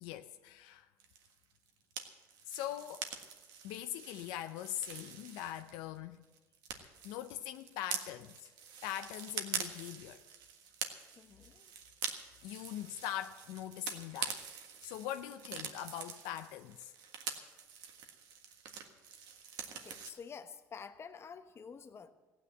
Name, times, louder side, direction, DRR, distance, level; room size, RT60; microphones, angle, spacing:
voice 1, 0.0-0.9 2.5-3.1 3.6-6.3 6.8-8.5 8.8-10.2 12.4-14.4 14.8-16.9, left 12 dB, 85° left, 0.6 m, -42 dB
sound 1, 1.0-6.0 6.2-20.1, right 7 dB, 75° right, 1.6 m, -45 dB
voice 2, 11.2-11.7 19.7-22.1, left 6 dB, 35° left, 1.1 m, -49 dB
15.5 x 9.3 x 7.8 m
supercardioid pair, 90°, 7 cm